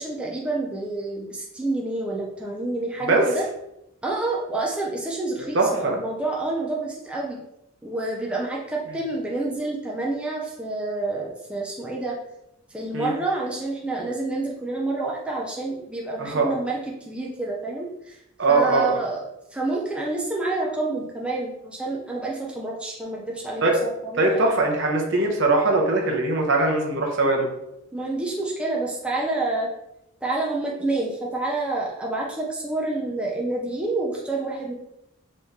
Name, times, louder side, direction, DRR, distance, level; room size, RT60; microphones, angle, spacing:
voice 1, 0.0-3.4 4.0-7.4 7.8-12.2 12.7-16.8 17.1-18.2 18.5-19.2 19.5-24.7 27.9-29.7 30.2-34.7, right 2 dB, 5° right, -3 dB, 0.4 m, -28 dB
voice 2, 5.5-6.0 12.9-13.1 16.2-16.5 18.4-19.0 23.6-23.8 24.2-27.5, right 2 dB, 60° right, 1 dB, 0.8 m, -21 dB
3.8 x 3.1 x 2.7 m, 0.84 s
head